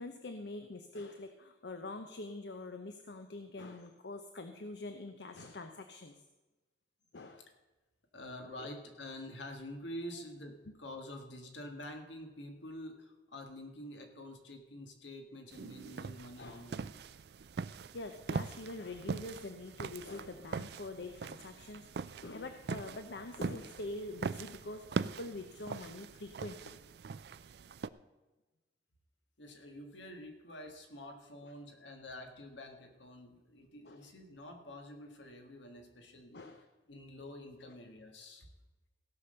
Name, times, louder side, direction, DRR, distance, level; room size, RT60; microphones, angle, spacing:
voice 1, 0.0-6.2 7.1-7.5 8.6-8.7 10.1-10.2 10.7-10.8 16.4-16.6 17.6-26.8 31.4-31.5 33.8-34.1 36.3-36.7 37.6-37.7, left 2 dB, 70° left, 7 dB, 0.8 m, -45 dB
voice 2, 8.1-16.9 29.4-36.5 36.9-38.5, left 1 dB, 90° left, 4 dB, 1.8 m, -47 dB
sound 1, 15.5-27.9, right 5 dB, 60° right, 0.4 m, -42 dB
16.5 x 6.0 x 6.6 m, 1.1 s
head